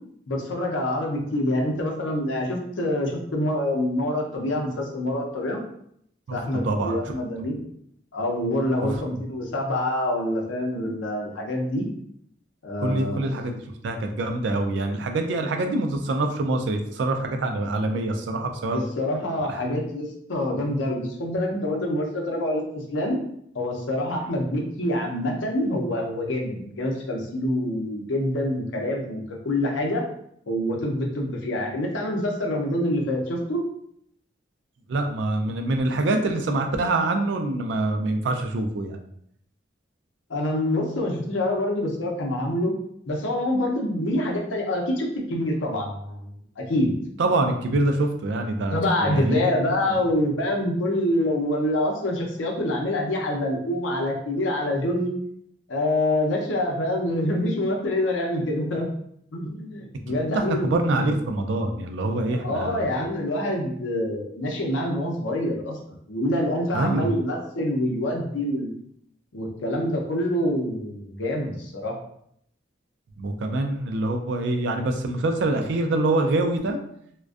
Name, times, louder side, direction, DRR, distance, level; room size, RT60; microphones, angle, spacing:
voice 1, 0.3-5.6 6.3-7.7 8.1-11.8 12.6-13.3 18.7-23.2 23.5-30.0 30.5-33.6 40.3-42.7 43.1-46.9 48.7-55.1 55.7-58.9 59.3-60.7 62.3-65.8 66.1-68.7 69.3-71.9, left 1 dB, 80° left, 0 dB, 0.6 m, -26 dB
voice 2, 6.6-7.0 8.8-9.0 12.8-18.8 19.5-19.6 34.9-39.0 47.2-49.4 60.3-62.9 66.7-67.1 73.2-76.8, right 2 dB, 70° right, 5 dB, 0.3 m, -25 dB
2.3 x 2.2 x 2.4 m, 0.70 s
head